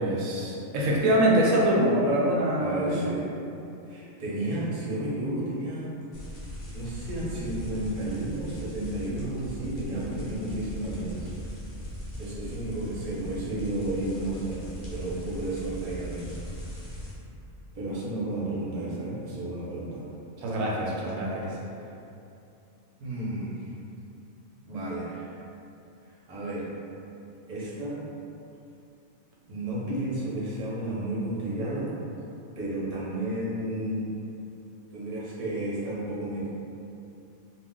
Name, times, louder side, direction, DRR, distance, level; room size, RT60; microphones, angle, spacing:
voice 1, 0.0-3.0 20.4-21.5, right 1 dB, 85° right, -4 dB, 1.0 m, -24 dB
voice 2, 2.6-3.3 3.9-5.9 6.7-11.3 12.2-16.3 17.7-20.0 23.0-23.6 24.6-25.3 26.3-26.7 27.5-28.0 29.4-31.9 32.6-34.0 34.9-36.5, right 1 dB, 40° right, -7 dB, 0.6 m, -32 dB
sound 1, 6.1-17.1, equal, 50° left, 0.8 m, -39 dB
2.4 x 2.1 x 3.7 m, 2.7 s
omnidirectional pair, 1.4 m